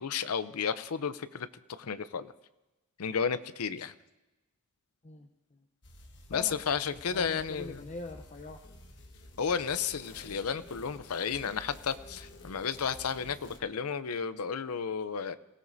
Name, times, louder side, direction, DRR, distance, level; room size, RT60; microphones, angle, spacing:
voice 1, 0.0-1.5 1.8-2.3 3.0-3.9 6.3-7.8 9.4-15.4, left 6 dB, 90° left, 14 dB, 0.6 m, -32 dB
voice 2, 5.0-5.6 6.3-6.6 7.0-8.6, left 3 dB, 35° left, 4 dB, 0.8 m, -43 dB
sound 1, 5.8-13.6, left 1 dB, 55° left, 1.5 m, -51 dB
27.0 x 17.0 x 2.7 m, 1.0 s
head